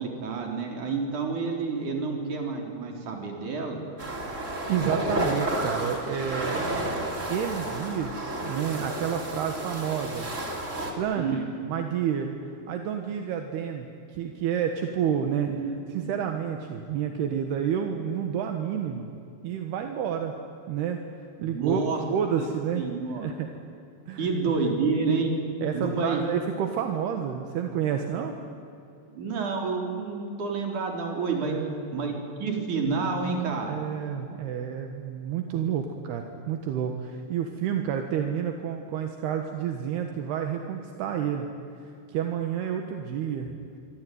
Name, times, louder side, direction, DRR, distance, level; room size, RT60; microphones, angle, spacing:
voice 1, 0.0-3.8 11.2-11.4 15.4-16.0 21.4-22.0 22.8-23.3 24.2-25.3 25.7-26.2 29.1-31.6 31.9-32.1 32.4-33.8, right 4 dB, 50° right, 2 dB, 5.2 m, -29 dB
sound 1, 4.0-10.9, right 1 dB, 20° right, 3.1 m, -31 dB
voice 2, 4.7-6.6 7.3-10.3 10.9-11.4 11.7-19.1 19.4-20.3 20.7-21.0 21.4-21.8 22.1-22.8 23.1-23.5 24.1-24.3 25.6-28.3 31.4-31.8 33.7-41.5 41.8-43.6, right 8 dB, 75° right, 4 dB, 3.4 m, -30 dB
25.5 x 25.0 x 9.4 m, 2.6 s
omnidirectional pair, 4.7 m